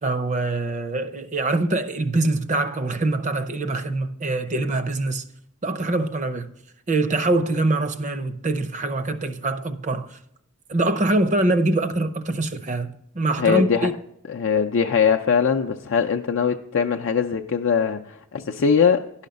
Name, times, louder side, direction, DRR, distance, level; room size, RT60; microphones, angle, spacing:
voice 1, 0.0-5.2 5.6-6.5 6.9-10.2 10.7-13.9, right 2 dB, 35° right, 0.6 m, -24 dB
voice 2, 13.4-13.9 14.3-19.3, left 6 dB, 60° left, 0.5 m, -21 dB
11.0 x 5.8 x 5.2 m
head